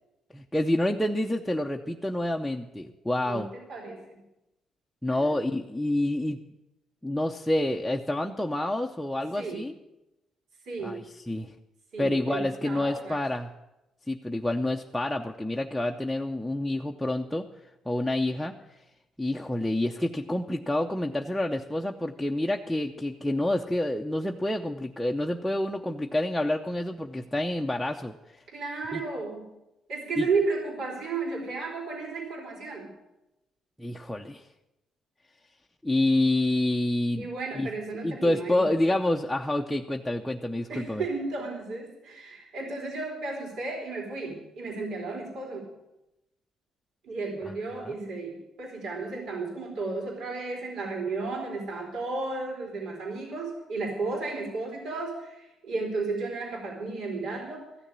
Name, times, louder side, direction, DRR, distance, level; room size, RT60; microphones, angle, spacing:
voice 1, 0.3-3.5 5.0-6.4 7.0-9.7 10.8-11.5 12.0-13.5 14.1-17.4 17.9-18.5 19.2-28.4 28.9-29.0 30.2-30.3 33.8-34.4 35.8-37.3 37.5-37.7 38.0-41.0 47.8-47.9, left 1 dB, ahead, 1 dB, 0.7 m, -28 dB
voice 2, 3.7-4.2 5.1-5.3 9.4-9.7 10.6-11.0 11.9-13.2 28.5-29.5 29.9-32.9 37.2-38.7 40.7-45.7 47.0-57.7, right 3 dB, 70° right, -1 dB, 4.3 m, -33 dB
15.0 x 7.1 x 9.9 m, 0.94 s
cardioid pair, 125°, 0 cm